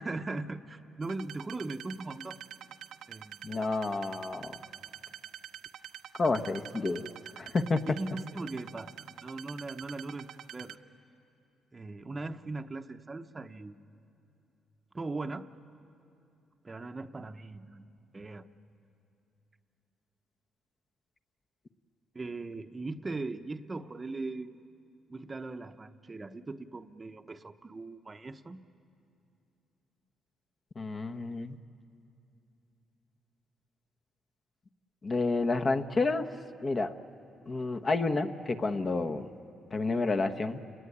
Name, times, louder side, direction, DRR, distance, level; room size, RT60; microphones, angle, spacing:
voice 1, 0.0-2.4 3.1-3.5 7.9-8.9 9.2-10.3 10.5-10.8 11.7-13.9 14.9-15.5 16.6-17.9 18.1-18.4 22.1-24.6 25.1-28.6, right 3 dB, 25° right, 8 dB, 0.9 m, -39 dB
sound 1, 1.0-10.7, right 10 dB, 80° right, 0.9 m, -46 dB
voice 2, 3.4-4.6 6.2-7.1 7.4-7.8 30.7-31.6 35.0-36.2 36.6-36.9 37.5-39.3 39.7-40.6, left 3 dB, 35° left, 7 dB, 1.1 m, -30 dB
29.5 x 19.0 x 9.9 m, 2.6 s
cardioid pair, 90°, 0 cm